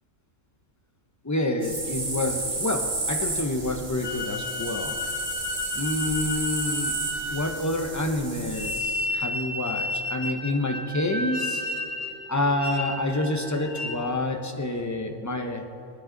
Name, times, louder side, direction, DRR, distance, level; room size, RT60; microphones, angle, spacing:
voice 1, 1.2-5.0 5.8-7.0 7.3-11.6 12.3-15.7, left 1 dB, 15° left, 4 dB, 0.8 m, -28 dB
sound 1, 1.6-8.8, right 2 dB, 55° right, 2.4 m, -32 dB
sound 2, 4.0-7.8 8.5-14.2, left 1 dB, 85° left, 1.7 m, -32 dB
25.0 x 9.4 x 4.0 m, 2.6 s
omnidirectional pair, 1.4 m